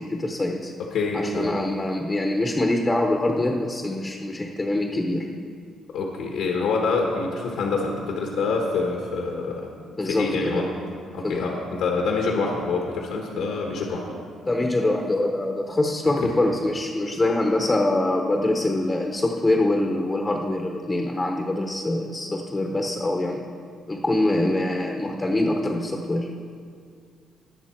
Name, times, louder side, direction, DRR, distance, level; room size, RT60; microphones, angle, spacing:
voice 1, 0.0-0.7 1.1-5.3 10.0-10.6 11.2-11.4 14.4-23.4 23.9-26.3, left 1 dB, 15° left, 2 dB, 0.8 m, -24 dB
voice 2, 0.8-1.5 5.9-9.7 10.0-10.7 11.1-14.1 16.2-16.3, left 4 dB, 80° left, 0 dB, 1.4 m, -26 dB
19.5 x 6.6 x 4.5 m, 2.3 s
cardioid pair, 150°, 0 cm